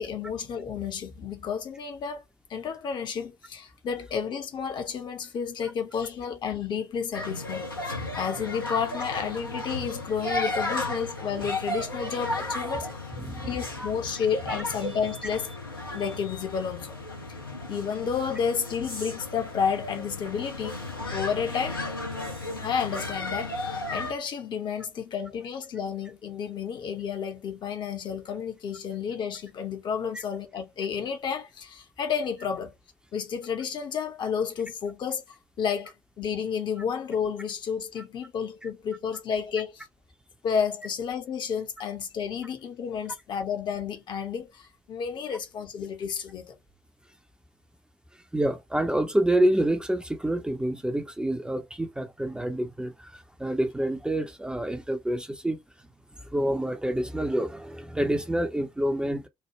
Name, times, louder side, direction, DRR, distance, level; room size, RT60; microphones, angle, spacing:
voice 1, 0.0-2.2 2.5-13.0 13.5-15.6 15.9-17.0 17.7-20.8 21.1-21.8 22.6-32.7 33.1-35.2 35.6-39.9 40.4-46.6, left 7 dB, 45° left, 0.8 m, -31 dB
sound 1, 7.1-24.1, left 2 dB, 85° left, 0.8 m, -34 dB
voice 2, 13.2-13.9 14.5-14.6 48.3-55.6 56.2-59.3, right 1 dB, 5° right, 0.5 m, -27 dB
3.2 x 2.1 x 2.9 m
figure-of-eight pair, 50°, 11 cm